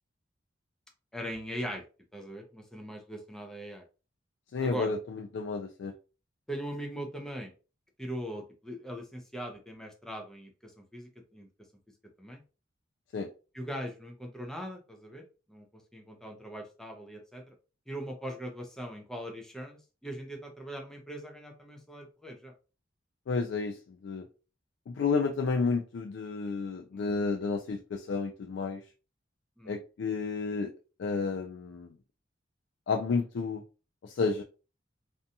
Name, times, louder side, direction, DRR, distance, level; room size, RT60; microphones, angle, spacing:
voice 1, 1.1-1.8 2.1-3.8 4.6-4.9 6.5-7.5 8.0-11.5 12.2-12.4 13.5-15.2 15.5-15.7 15.9-17.5 17.9-22.5 26.9-27.1 29.6-29.8, equal, 5° left, 0.5 m, -40 dB
voice 2, 4.5-5.9 13.1-13.3 23.3-24.3 24.9-28.8 29.7-30.7 31.0-31.9 32.9-33.6 34.0-34.4, left 4 dB, 65° left, 0.3 m, -31 dB
2.6 x 2.2 x 2.7 m
head